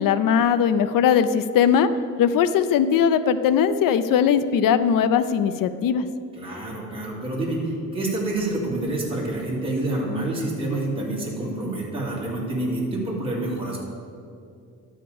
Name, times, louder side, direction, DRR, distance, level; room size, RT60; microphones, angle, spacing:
voice 1, 0.0-1.9 2.2-6.0, left 8 dB, 85° left, 12 dB, 0.5 m, -20 dB
voice 2, 6.3-13.8, right 2 dB, 15° right, -5 dB, 2.2 m, -27 dB
11.5 x 5.1 x 7.7 m, 2.4 s
wide cardioid pair, 175°, 32 cm